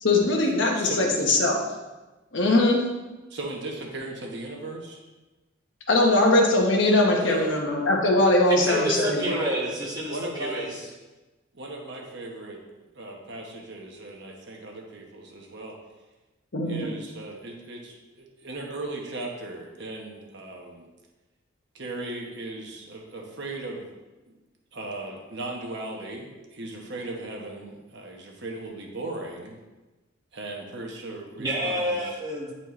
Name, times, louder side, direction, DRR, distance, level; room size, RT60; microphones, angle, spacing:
voice 1, 0.0-1.6 2.3-2.8 5.9-9.2 16.5-16.9, left 2 dB, 65° left, 0 dB, 1.1 m, -21 dB
voice 2, 0.7-1.1 3.3-5.0 7.3-7.6 9.2-9.5 10.0-10.7 11.5-12.6 12.9-15.8 16.6-20.9 21.7-23.8 24.7-29.6 30.3-32.2, right 2 dB, 60° right, 0 dB, 1.1 m, -37 dB
voice 3, 8.5-10.9 31.4-32.5, right 1 dB, 20° right, -5 dB, 1.7 m, -29 dB
9.7 x 4.3 x 3.2 m, 1.1 s
head